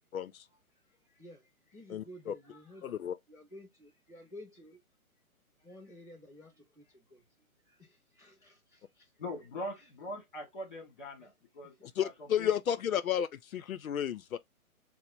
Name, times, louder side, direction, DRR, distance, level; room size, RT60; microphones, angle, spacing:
voice 1, 0.1-0.4 1.9-2.3 2.8-3.1 12.0-14.4, left 9 dB, 70° left, 0.5 m, -32 dB
voice 2, 0.7-4.8 5.6-9.1 9.8-9.9 11.6-11.9, left 1 dB, 15° right, 0.8 m, -54 dB
voice 3, 9.2-12.5, left 1 dB, 35° left, 1.3 m, -42 dB
4.4 x 2.0 x 2.6 m
hypercardioid pair, 180°, 43 cm